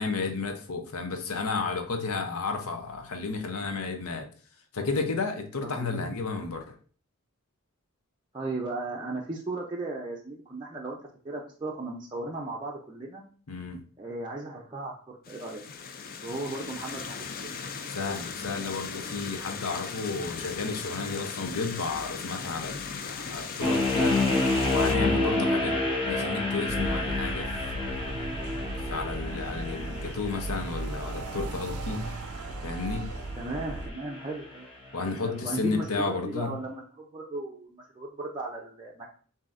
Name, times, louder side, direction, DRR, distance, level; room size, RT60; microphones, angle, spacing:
voice 1, 0.0-4.3 4.7-6.8 13.5-13.8 17.9-24.4 24.7-25.8 26.1-27.5 27.8-28.1 28.9-32.0 32.6-33.1 34.9-36.5, left 4 dB, 70° left, 5 dB, 0.7 m, -32 dB
voice 2, 5.6-6.2 8.3-11.0 11.2-13.2 14.0-15.6 16.2-17.5 33.4-34.7 35.2-39.1, right 2 dB, 20° right, -3 dB, 0.5 m, -36 dB
sound 1, 15.2-24.9, left 5 dB, 40° left, 0.4 m, -38 dB
sound 2, 23.6-34.7, left 2 dB, 25° left, 0.9 m, -30 dB
sound 3, 26.7-33.9, right 2 dB, 75° right, 0.5 m, -36 dB
7.3 x 2.7 x 2.5 m, 0.42 s
head